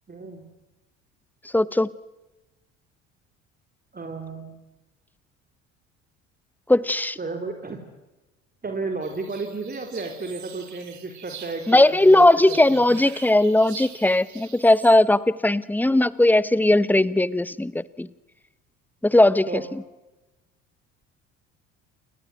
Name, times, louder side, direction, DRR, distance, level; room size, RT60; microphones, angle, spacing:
voice 1, 0.1-0.5 3.9-4.6 7.2-7.9 8.6-12.8 19.5-19.6, right 3 dB, 25° right, 5 dB, 3.9 m, -33 dB
voice 2, 1.5-1.9 6.7-7.2 11.7-18.1 19.0-19.5, left 1 dB, 5° left, 19 dB, 1.1 m, -18 dB
sound 1, 9.0-15.0, right 9 dB, 45° right, 3.5 m, -44 dB
29.0 x 20.5 x 9.3 m, 1.1 s
figure-of-eight pair, 55°, 39 cm